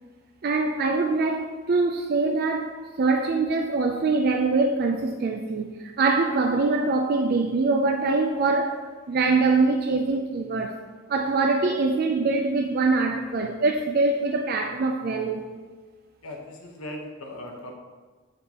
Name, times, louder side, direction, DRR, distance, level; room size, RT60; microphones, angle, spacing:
voice 1, 0.4-10.7 11.1-15.5, right 3 dB, 45° right, 0.4 m, -24 dB
voice 2, 16.2-17.7, left 1 dB, 85° left, 1.0 m, -38 dB
7.4 x 6.6 x 2.9 m
head